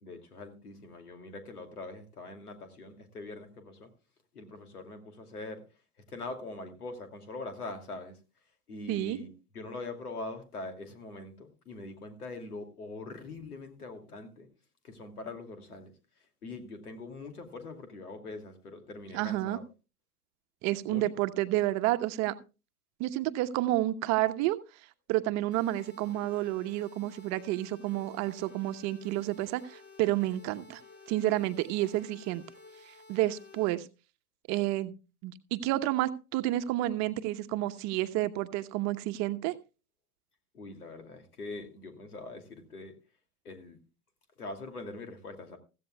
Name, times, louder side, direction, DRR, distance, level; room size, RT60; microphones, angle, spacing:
voice 1, 0.0-3.9 4.3-5.6 6.1-8.2 8.7-14.5 14.8-15.9 16.4-19.6 20.9-21.0 40.5-42.9 43.4-43.8 44.4-45.6, left 2 dB, 80° left, 7 dB, 2.7 m, -43 dB
voice 2, 19.1-19.6 20.6-22.3 23.0-24.6 25.1-30.8 31.1-32.4 33.1-33.9 34.5-34.9 35.2-39.5, right 15 dB, 35° right, 11 dB, 1.1 m, -30 dB
sound 1, 25.5-33.7, left 4 dB, 20° left, 3.4 m, -53 dB
16.0 x 14.5 x 2.3 m, 0.31 s
figure-of-eight pair, 95°, 45 cm